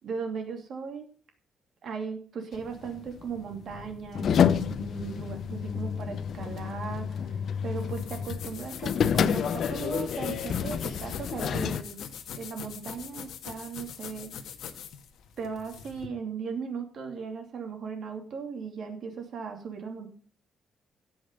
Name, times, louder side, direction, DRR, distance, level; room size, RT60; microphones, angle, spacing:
voice 1, 0.0-1.1 1.8-12.0 12.3-14.3 15.4-20.1, right 5 dB, 60° right, 4 dB, 2.8 m, -37 dB
sound 1, 2.5-11.8, left 8 dB, 55° left, 0.6 m, -29 dB
sound 2, 7.8-16.1, left 8 dB, 85° left, 1.5 m, -42 dB
16.5 x 5.7 x 5.4 m, 0.41 s
cardioid pair, 145°, 0 cm